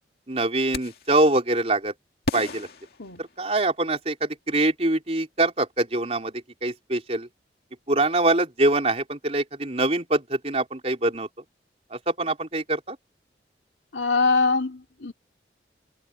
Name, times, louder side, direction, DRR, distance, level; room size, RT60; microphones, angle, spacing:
voice 1, 0.3-1.9 2.3-2.7 3.2-7.3 7.9-11.3 11.9-13.0, right 2 dB, 35° right, 4.1 m, -24 dB
sound 1, 0.7-1.2 2.2-3.8, left 2 dB, 55° left, 2.4 m, -34 dB
voice 2, 13.9-15.1, left 4 dB, 80° left, 2.7 m, -23 dB
head